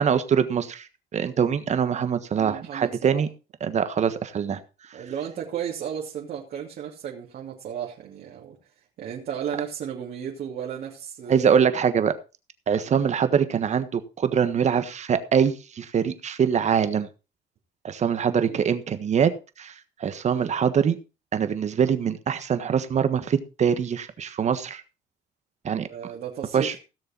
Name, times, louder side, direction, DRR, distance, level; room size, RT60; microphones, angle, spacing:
voice 1, 0.0-3.3 3.6-4.6 11.3-12.1 12.7-17.1 17.8-19.7 20.0-21.0 21.3-24.8 25.6-25.9 26.5-26.7, right 7 dB, 45° right, 11 dB, 1.4 m, -23 dB
voice 2, 2.3-3.2 4.9-8.6 9.0-11.6 12.8-13.0 18.5-18.7 25.9-26.8, right 8 dB, 60° right, -2 dB, 2.9 m, -34 dB
17.0 x 6.8 x 4.4 m, 0.31 s
cardioid pair, 110°, 17 cm